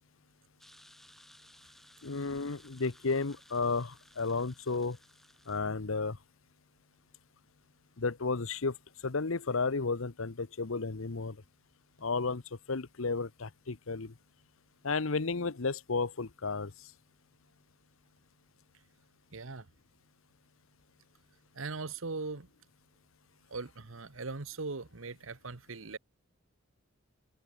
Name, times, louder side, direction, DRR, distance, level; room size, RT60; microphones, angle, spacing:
sound 1, 0.6-5.6, equal, ahead, 3.0 m, -59 dB
voice 1, 2.0-5.0 5.5-6.2 8.0-8.8 9.0-11.4 12.0-12.4 12.7-14.1 14.8-16.7, left 4 dB, 70° left, 1.0 m, -33 dB
voice 2, 19.3-19.7 21.5-22.5 23.5-26.0, right 3 dB, 70° right, 1.2 m, -40 dB
head